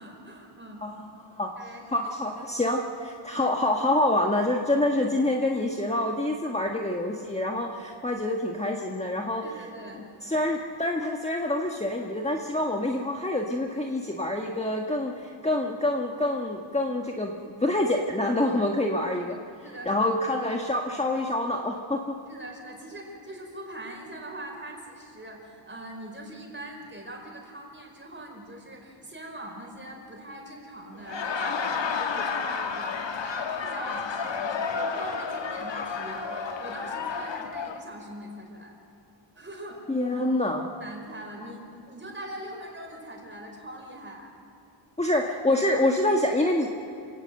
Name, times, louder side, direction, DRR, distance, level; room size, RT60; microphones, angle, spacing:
voice 1, 0.0-0.8 1.6-2.0 9.4-10.0 19.6-20.1 22.3-38.8 39.3-39.8 40.1-40.2 40.8-44.4, right 1 dB, 25° right, 1 dB, 5.2 m, -42 dB
voice 2, 0.8-1.5 1.9-9.4 10.2-19.4 19.9-22.2 39.9-40.7 45.0-46.7, left 1 dB, 15° left, 1 dB, 1.5 m, -26 dB
Laughter, 30.9-37.8, left 5 dB, 60° left, 1.6 m, -31 dB
27.0 x 17.5 x 7.8 m, 2.8 s
wide cardioid pair, 100°, 49 cm